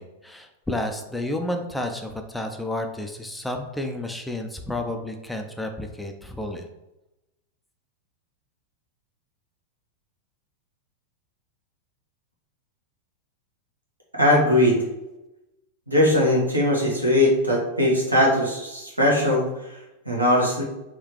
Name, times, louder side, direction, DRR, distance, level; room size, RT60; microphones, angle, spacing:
voice 1, 0.0-6.7, left 1 dB, 5° left, 4 dB, 0.4 m, -31 dB
voice 2, 14.2-14.8 15.9-19.4 20.1-20.6, left 1 dB, 85° right, -3 dB, 1.2 m, -20 dB
3.7 x 3.1 x 3.1 m, 0.95 s
figure-of-eight pair, 90°, 0 cm